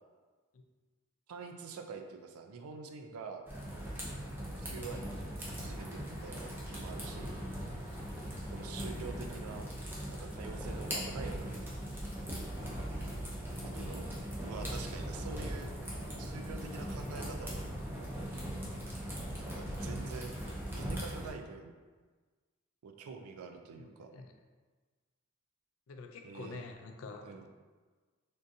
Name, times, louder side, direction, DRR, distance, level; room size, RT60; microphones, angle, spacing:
voice 1, 1.3-3.4 4.6-5.2 5.6-7.4 8.5-9.7 10.1-11.7 13.6-14.1 14.4-15.7 16.2-17.7 19.4-20.3 20.7-21.7 22.8-24.1 26.2-26.6 27.2-27.5, right 5 dB, 85° right, 5 dB, 0.4 m, -46 dB
sound 1, 3.5-21.3, equal, 10° right, 0.5 m, -40 dB
Motor vehicle (road), 5.6-10.6, equal, 30° left, 0.8 m, -58 dB
voice 2, 23.7-24.3 25.9-27.5, left 3 dB, 70° left, 4 dB, 0.3 m, -47 dB
3.5 x 2.6 x 2.6 m, 1.4 s
head